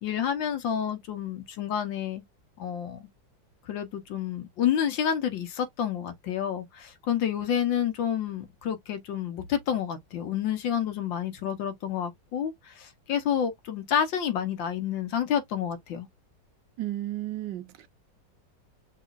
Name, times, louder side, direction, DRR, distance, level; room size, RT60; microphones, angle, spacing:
voice 1, 0.0-2.2 2.6-3.1 3.7-16.1, left 9 dB, 80° left, 1.8 m, -29 dB
voice 2, 16.8-17.9, right 14 dB, 75° right, 1.4 m, -33 dB
6.1 x 3.1 x 2.5 m
omnidirectional pair, 2.0 m